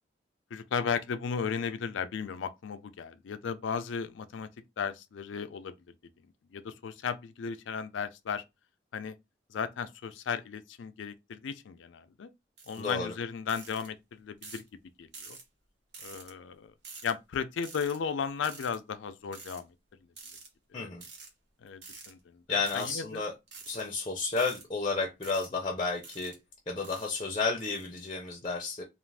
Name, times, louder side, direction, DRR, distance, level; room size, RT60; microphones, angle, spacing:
voice 1, 0.5-4.5 4.8-5.7 6.5-8.4 8.9-9.1 9.5-12.3 12.7-14.6 15.0-15.4 16.0-16.7 17.0-19.7 20.7-20.9 21.6-23.2, left 6 dB, 80° left, 0.4 m, -35 dB
sound 1, 12.6-12.9 13.5-13.9 14.4-14.7 15.1-15.4 15.9-16.3 16.8-17.1 17.6-18.0 18.4-18.8 19.3-19.6 20.2-20.5 21.0-21.3 21.8-22.1 22.6-23.0 23.5-23.8 24.4-24.6 25.2-25.5 26.0-26.4 26.8-27.1 27.6-27.9, right 4 dB, 60° right, 0.8 m, -47 dB
voice 2, 12.8-13.1 20.7-21.0 22.5-23.3 23.7-26.3 26.7-28.8, left 4 dB, 25° left, 0.5 m, -32 dB
2.5 x 2.4 x 3.3 m
head